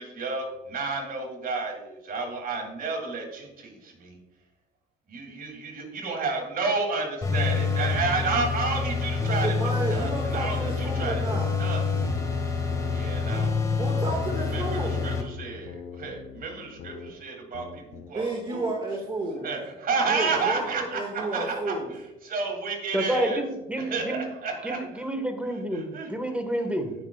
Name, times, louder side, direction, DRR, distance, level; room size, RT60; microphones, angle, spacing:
voice 1, 0.0-4.2 5.1-9.5 9.8-11.2 11.6-12.0 12.9-13.9 14.5-18.6 19.4-21.8 22.2-23.4 23.8-24.9 25.4-26.1 26.5-26.7, right 4 dB, 50° right, 1 dB, 2.7 m, -31 dB
sound 1, 7.2-15.2, left 4 dB, 15° left, 1.8 m, -27 dB
voice 2, 9.3-11.5 13.8-15.0 18.1-19.5 20.1-21.9, right 2 dB, 25° right, -1 dB, 1.8 m, -31 dB
sound 2, 10.2-12.4 12.7-17.1 17.5-18.1, left 8 dB, 70° left, 1.0 m, -42 dB
voice 3, 22.9-24.3 24.6-26.9, right 1 dB, 5° right, 5 dB, 1.5 m, -29 dB
17.0 x 6.0 x 2.4 m, 0.96 s
supercardioid pair, 75°, 19 cm